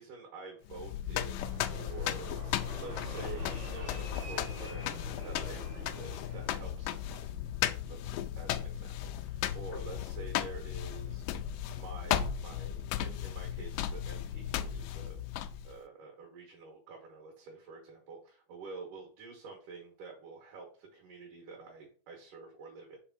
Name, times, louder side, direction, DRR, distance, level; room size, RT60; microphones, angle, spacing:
voice 1, 0.0-7.3 7.9-15.2 15.6-23.0, right 4 dB, 70° right, 0 dB, 3.1 m, -48 dB
sound 1, 0.7-15.8, left 11 dB, 85° left, 2.1 m, -36 dB
Fixed-wing aircraft airplane, 1.3-6.9, right 1 dB, 35° right, 0.9 m, -47 dB
6.5 x 3.4 x 6.1 m, 0.42 s
omnidirectional pair, 3.8 m